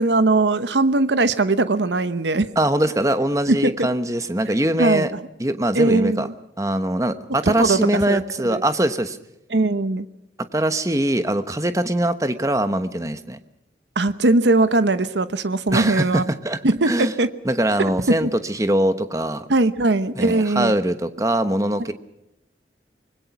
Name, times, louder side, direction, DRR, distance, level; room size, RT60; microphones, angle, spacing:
voice 1, 0.0-2.5 3.5-3.9 4.8-5.2 5.7-6.3 7.4-7.8 8.1-8.6 9.5-10.0 14.0-16.3 16.6-17.3 18.2-18.3 19.5-20.7, right 2 dB, 85° right, 12 dB, 1.0 m, -20 dB
voice 2, 2.6-5.1 5.4-6.3 6.6-9.2 10.5-13.4 15.7-16.6 16.9-17.1 17.4-19.4 20.2-21.9, right 1 dB, 20° right, 10 dB, 1.1 m, -22 dB
25.0 x 20.5 x 6.0 m, 0.89 s
head